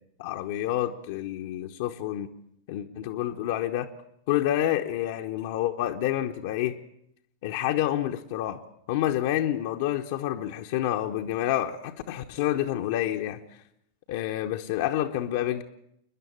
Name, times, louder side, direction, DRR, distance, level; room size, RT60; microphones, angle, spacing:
voice 1, 0.2-2.3 2.7-3.9 4.3-6.7 7.4-8.6 8.9-13.4 14.1-15.6, left 12 dB, 50° left, 1.0 m, -28 dB
28.0 x 11.0 x 8.8 m
figure-of-eight pair, 90°, 0 cm